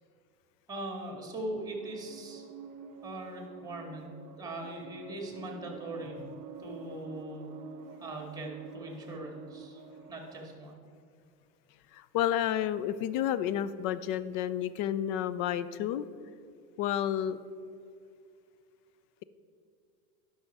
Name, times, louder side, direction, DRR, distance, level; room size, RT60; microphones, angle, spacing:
voice 1, 0.7-2.4 3.0-6.2 6.6-7.6 8.0-9.8 10.1-10.8, right 1 dB, 10° right, 1 dB, 2.1 m, -40 dB
sound 1, 1.1-10.5, right 6 dB, 80° right, 0.7 m, -48 dB
voice 2, 11.9-16.1 16.8-17.4, left 10 dB, 45° left, 15 dB, 0.4 m, -30 dB
11.5 x 5.5 x 4.6 m, 2.4 s
hypercardioid pair, 100°, 47 cm